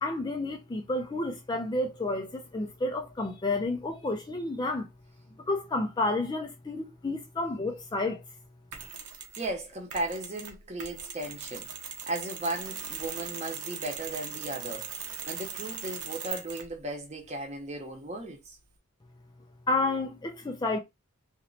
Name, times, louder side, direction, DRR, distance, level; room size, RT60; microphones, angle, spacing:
voice 1, 0.0-4.9 5.5-8.2 19.7-20.8, left 2 dB, 20° left, 0.3 m, -30 dB
Mechanisms, 8.7-9.5 9.9-16.8, right 7 dB, 80° right, 0.8 m, -40 dB
voice 2, 9.4-11.7 12.1-14.9 15.3-18.6, right 1 dB, 30° right, 0.8 m, -36 dB
3.0 x 2.9 x 2.6 m
head